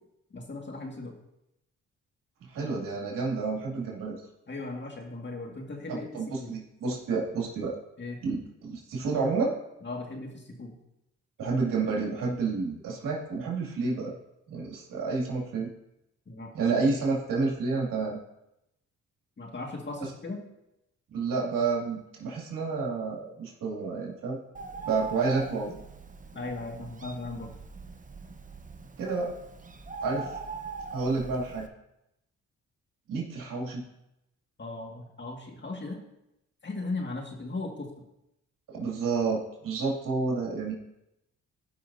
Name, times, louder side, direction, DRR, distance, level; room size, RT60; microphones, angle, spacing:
voice 1, 0.3-1.2 4.5-6.1 6.4-6.5 8.0-8.2 9.8-10.7 16.3-16.5 19.4-20.4 26.3-27.5 34.6-36.0 36.6-37.9, left 2 dB, 35° left, 1 dB, 2.0 m, -37 dB
voice 2, 2.5-4.2 5.9-7.8 8.2-9.5 11.4-14.1 14.5-15.7 16.5-18.2 20.0-20.1 21.1-24.4 24.8-25.7 29.0-29.3 30.0-30.4 30.9-31.7 33.1-33.8 38.7-40.7, right 4 dB, 75° right, -2 dB, 2.5 m, -30 dB
Bird, 24.5-31.7, right 4 dB, 25° right, 1.0 m, -42 dB
16.5 x 5.7 x 2.7 m, 0.86 s
supercardioid pair, 55°, 33 cm